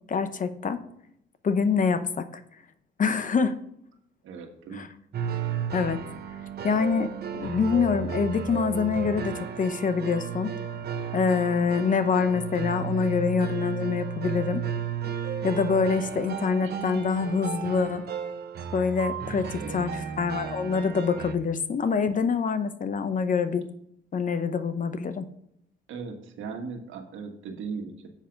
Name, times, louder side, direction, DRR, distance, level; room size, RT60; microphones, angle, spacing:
voice 1, 0.1-0.8 1.4-2.3 3.0-3.6 4.7-4.9 5.7-6.0 6.6-10.6 11.1-14.6 15.4-18.0 18.7-23.6 24.1-25.3, left 5 dB, 40° left, 11 dB, 0.8 m, -25 dB
voice 2, 4.2-4.9 12.9-13.0 16.6-16.9 19.5-19.8 25.9-28.1, right 5 dB, 80° right, 3 dB, 1.5 m, -38 dB
sound 1, 5.1-21.3, right 8 dB, 55° right, 1.1 m, -34 dB
7.4 x 5.8 x 5.2 m, 0.73 s
cardioid pair, 90°, 20 cm